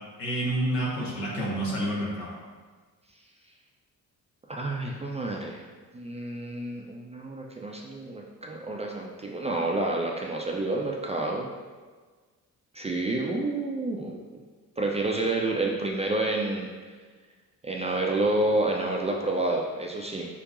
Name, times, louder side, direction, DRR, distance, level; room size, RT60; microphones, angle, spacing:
voice 1, 0.2-2.3, right 1 dB, 85° left, -5 dB, 0.9 m, -28 dB
voice 2, 4.5-5.7 5.9-11.5 12.7-14.4 14.8-16.7 17.6-20.3, right 2 dB, 15° right, -1 dB, 0.3 m, -29 dB
4.8 x 2.5 x 2.5 m, 1.4 s
hypercardioid pair, 40°, 47 cm